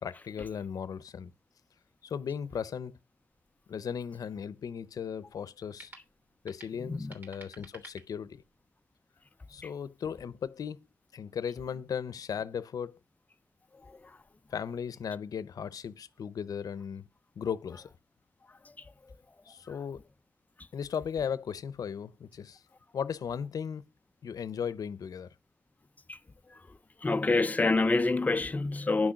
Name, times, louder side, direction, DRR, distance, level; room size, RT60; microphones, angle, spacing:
voice 1, 0.0-1.3 2.0-3.0 3.7-5.9 6.4-8.4 9.5-10.9 11.1-13.0 14.5-17.1 17.4-17.9 19.5-20.0 20.7-22.6 22.9-23.9 24.2-25.3, left 7 dB, 90° left, 0.7 m, -36 dB
sound 1, 3.3-8.7, right 2 dB, 35° right, 3.1 m, -55 dB
voice 2, 27.0-29.1, left 3 dB, 25° left, 0.6 m, -27 dB
10.5 x 6.4 x 5.8 m
wide cardioid pair, 120°, 6 cm